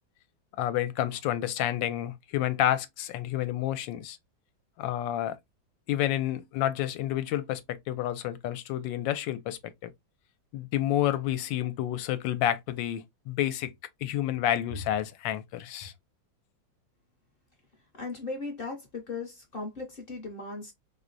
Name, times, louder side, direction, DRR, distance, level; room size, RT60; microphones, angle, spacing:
voice 1, 0.6-4.2 4.8-5.4 5.9-9.9 10.5-13.7 14.0-15.9, left 12 dB, 75° left, 1.2 m, -29 dB
voice 2, 17.9-20.7, left 3 dB, 45° left, 0.7 m, -37 dB
4.7 x 2.1 x 2.5 m
omnidirectional pair, 2.1 m